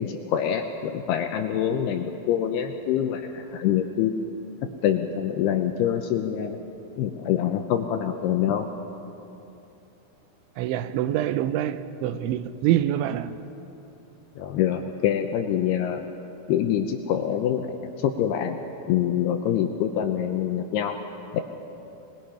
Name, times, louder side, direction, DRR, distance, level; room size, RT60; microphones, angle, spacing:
voice 1, 0.0-4.2 4.8-6.6 7.0-8.7 14.4-16.0 16.5-18.6 18.9-21.0 21.3-21.4, left 9 dB, 80° left, 2.4 m, -25 dB
voice 2, 10.6-13.4, right 12 dB, 85° right, 3.0 m, -25 dB
26.0 x 20.0 x 5.7 m
omnidirectional pair, 5.4 m